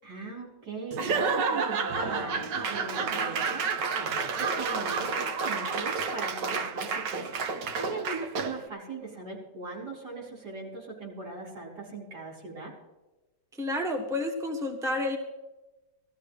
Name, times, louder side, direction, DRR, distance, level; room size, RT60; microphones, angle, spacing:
voice 1, 0.0-7.3 7.8-12.7, right 3 dB, 70° right, -4 dB, 5.2 m, -40 dB
Laughter / Applause / Crowd, 0.9-8.7, right 5 dB, 90° right, 1.6 m, -30 dB
voice 2, 13.5-15.2, left 1 dB, ahead, 2 dB, 1.3 m, -30 dB
19.0 x 14.0 x 3.3 m, 1.1 s
omnidirectional pair, 1.8 m